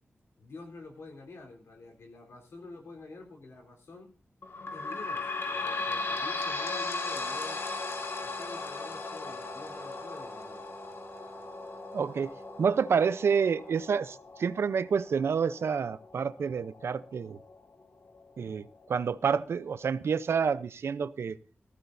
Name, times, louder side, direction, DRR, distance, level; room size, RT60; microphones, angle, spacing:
voice 1, 0.4-4.1 4.7-7.6 8.2-10.7, left 3 dB, 85° left, 2 dB, 3.8 m, -48 dB
sound 1, 4.4-17.6 18.1-18.2 18.5-18.6 19.4-19.5, left 3 dB, 65° left, 1.8 m, -37 dB
Brass instrument, 7.0-14.0, right 1 dB, 20° right, 2.7 m, -49 dB
voice 2, 11.9-12.3 12.6-17.4 18.4-21.4, right 6 dB, 80° right, 15 dB, 0.7 m, -28 dB
19.0 x 15.0 x 2.7 m, 0.38 s
wide cardioid pair, 85°, 4 cm